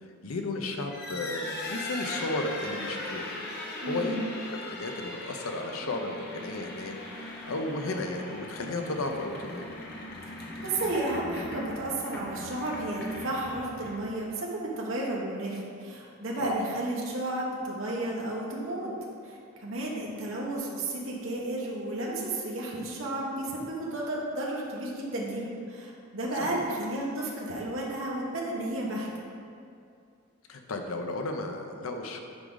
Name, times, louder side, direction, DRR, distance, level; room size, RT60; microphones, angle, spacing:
voice 1, 0.2-3.4 3.9-4.2 4.5-9.7 16.4-16.5 26.4-26.6 30.5-32.2, left 2 dB, 80° left, 4 dB, 0.7 m, -34 dB
sound 1, 0.8-14.2, left 1 dB, 50° left, 1.1 m, -39 dB
voice 2, 3.8-4.3 10.6-18.9 19.2-29.1, right 1 dB, 65° right, -4 dB, 1.4 m, -32 dB
9.6 x 4.8 x 4.0 m, 2.4 s
head